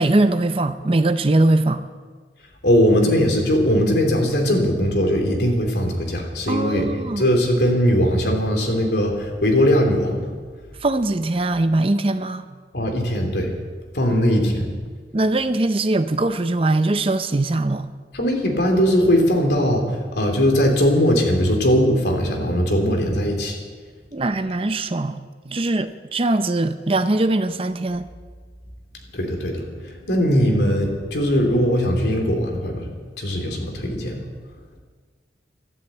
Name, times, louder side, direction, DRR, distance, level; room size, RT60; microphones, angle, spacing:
voice 1, 0.0-1.8 6.5-7.2 10.8-12.5 15.1-17.9 24.1-25.2 25.5-28.0, right 2 dB, 30° right, 10 dB, 0.6 m, -21 dB
voice 2, 2.6-6.9 7.2-10.3 12.7-13.5 13.9-14.7 18.1-23.6 29.1-32.9 33.2-34.1, equal, 70° left, 2 dB, 3.0 m, -20 dB
12.5 x 12.0 x 8.1 m, 1.5 s
head